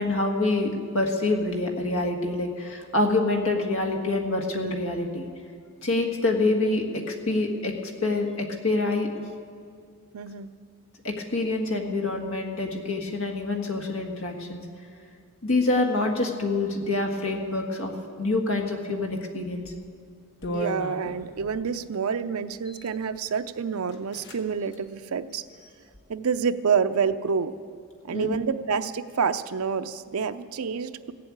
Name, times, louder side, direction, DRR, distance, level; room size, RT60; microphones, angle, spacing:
voice 1, 0.0-5.3 5.8-7.7 8.0-9.1 11.0-14.6 15.4-17.9 18.2-19.7 28.1-28.4, left 2 dB, 65° left, 2 dB, 1.6 m, -26 dB
voice 2, 10.1-10.5 20.5-25.4 26.1-27.5 28.0-31.1, right 6 dB, 75° right, 10 dB, 0.5 m, -28 dB
sound 1, 19.6-19.8 20.4-21.6 22.5-23.0 23.5-23.6 23.9-24.4 24.7-24.8 25.3-26.0, equal, 50° left, 1.2 m, -36 dB
16.0 x 7.7 x 8.7 m, 2.2 s
head